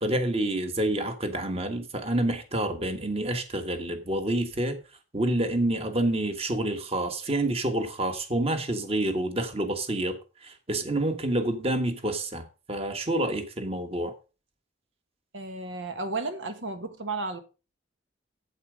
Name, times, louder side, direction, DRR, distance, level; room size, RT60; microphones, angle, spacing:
voice 1, 0.0-4.8 5.1-14.1, right 1 dB, 30° right, 1.4 m, -28 dB
voice 2, 15.3-17.4, right 3 dB, 90° right, 1.4 m, -33 dB
8.5 x 8.1 x 5.0 m
head